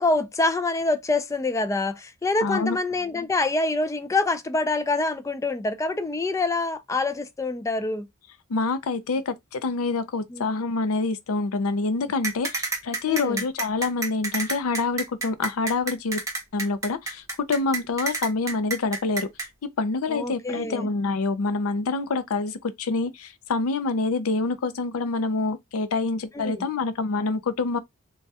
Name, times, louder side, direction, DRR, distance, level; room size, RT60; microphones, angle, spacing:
voice 1, 0.0-8.1 10.3-10.5 13.1-13.4 20.1-20.9 26.3-26.6, left 2 dB, 15° left, 0.3 m, -26 dB
voice 2, 2.4-2.8 8.5-16.2 16.5-19.3 19.8-27.8, left 3 dB, 85° left, 0.5 m, -26 dB
sound 1, 12.2-19.5, right 3 dB, 15° right, 0.7 m, -29 dB
3.3 x 2.2 x 2.7 m
head